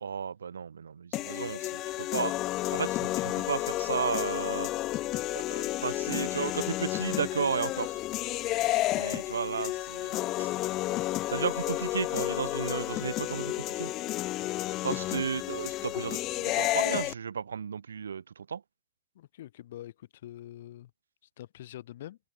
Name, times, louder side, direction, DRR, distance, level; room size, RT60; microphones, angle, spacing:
voice 1, 0.0-2.3 2.7-4.7 5.3-8.0 9.0-10.5 11.3-13.9 14.8-18.6, right 6 dB, 70° right, 0.6 m, -34 dB
sound 1, 1.1-17.1, left 17 dB, 35° left, 1.4 m, -31 dB
voice 2, 19.1-20.9 21.4-22.2, left 13 dB, 60° left, 1.5 m, -45 dB
figure-of-eight pair, 90°, 0 cm